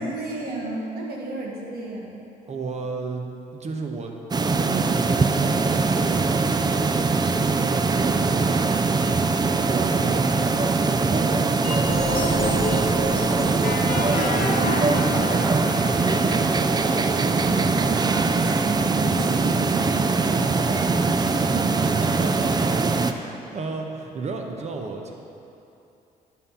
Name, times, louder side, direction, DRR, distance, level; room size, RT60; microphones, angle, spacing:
voice 1, 0.0-2.2 14.5-22.1, right 2 dB, 75° right, -2 dB, 1.7 m, -33 dB
voice 2, 2.5-4.2 4.6-13.8 21.7-25.1, right 3 dB, 45° right, 3 dB, 1.0 m, -34 dB
sound 1, 4.3-23.1, right 4 dB, 25° right, 0.4 m, -22 dB
sound 2, 11.6-16.6, left 3 dB, 70° left, 1.2 m, -30 dB
11.0 x 3.9 x 5.7 m, 2.8 s
cardioid pair, 80°, 16 cm